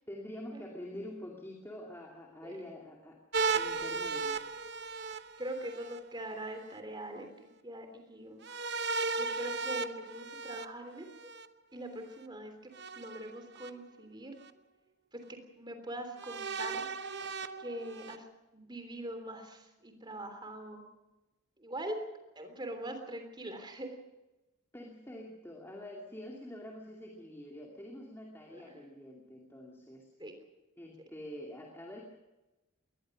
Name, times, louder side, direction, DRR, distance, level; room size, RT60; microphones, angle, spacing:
voice 1, 0.1-3.2 3.5-4.5 24.7-30.1 30.8-32.0, left 1 dB, 10° left, 0 dB, 2.4 m, -46 dB
sound 1, 3.3-6.0 8.4-11.5 12.7-13.7 14.4-14.5 16.2-18.2, right 4 dB, 50° right, 1.0 m, -36 dB
voice 2, 5.4-8.4 9.2-11.3 11.7-12.5 13.0-14.3 15.1-15.2 15.6-16.9 17.6-18.2 18.5-20.9 21.6-22.0 22.4-23.9 28.5-28.6 30.2-30.3, right 1 dB, 20° right, 6 dB, 3.4 m, -42 dB
22.5 x 19.5 x 6.3 m, 1.1 s
head